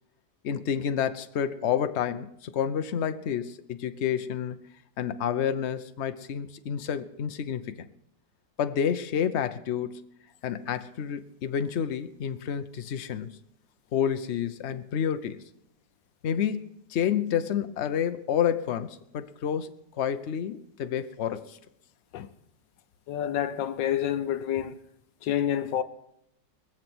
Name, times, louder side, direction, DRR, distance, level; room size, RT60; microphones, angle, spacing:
voice 1, 0.4-4.6 5.0-7.9 8.6-10.1 10.4-13.4 13.9-15.4 16.2-21.6, left 8 dB, 55° left, 0.8 m, -29 dB
voice 2, 23.1-24.8 25.2-25.8, left 10 dB, 80° left, 1.5 m, -28 dB
22.0 x 7.4 x 6.1 m
omnidirectional pair, 2.0 m